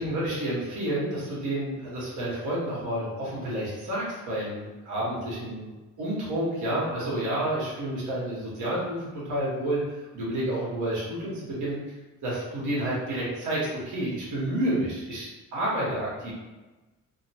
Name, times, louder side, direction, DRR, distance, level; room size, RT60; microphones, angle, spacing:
voice 1, 0.0-5.7 6.0-11.8 12.2-16.3, right 1 dB, 80° right, -6 dB, 1.4 m, -30 dB
3.0 x 2.0 x 2.8 m, 1.1 s
cardioid pair, 90°, 30 cm